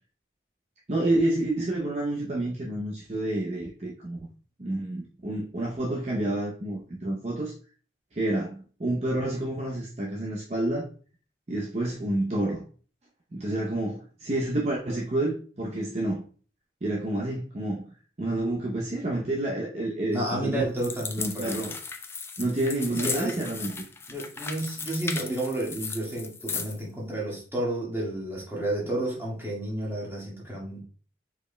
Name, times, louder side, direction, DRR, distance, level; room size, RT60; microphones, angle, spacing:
voice 1, 0.9-4.2 4.6-7.5 8.1-10.9 11.5-12.6 13.3-16.2 16.8-17.8 18.2-20.7 21.2-21.7 22.4-23.8, right 1 dB, 35° right, -2 dB, 0.7 m, -29 dB
voice 2, 20.1-21.7 22.9-23.4 24.1-30.8, right 1 dB, 15° right, -5 dB, 1.8 m, -31 dB
sound 1, 20.8-26.8, left 4 dB, 15° left, 0.3 m, -36 dB
5.1 x 4.7 x 2.2 m, 0.40 s
head